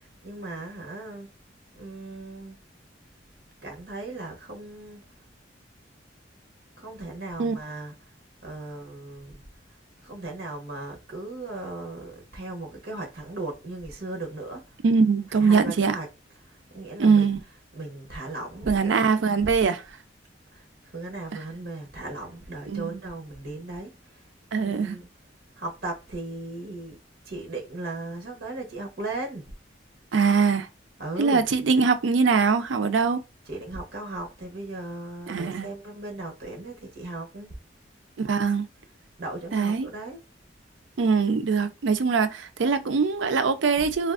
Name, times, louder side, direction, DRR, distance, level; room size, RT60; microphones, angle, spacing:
voice 1, 0.2-1.3 1.8-2.6 3.6-5.0 6.8-7.9 8.4-9.4 10.0-14.6 15.3-16.1 16.4-17.3 17.7-19.4 20.5-24.2 24.6-25.1 25.6-27.0 27.2-29.5 31.0-31.5 33.5-37.5 39.2-40.2 43.8-43.9, right 2 dB, 60° right, 1.0 m, -37 dB
voice 2, 14.8-16.0 17.0-17.4 18.7-19.8 22.7-23.0 24.5-25.0 30.1-30.7 31.2-33.2 35.3-35.7 38.2-38.7 39.5-39.9 41.0-44.1, right 5 dB, 75° right, 0.4 m, -22 dB
3.5 x 2.4 x 2.4 m
head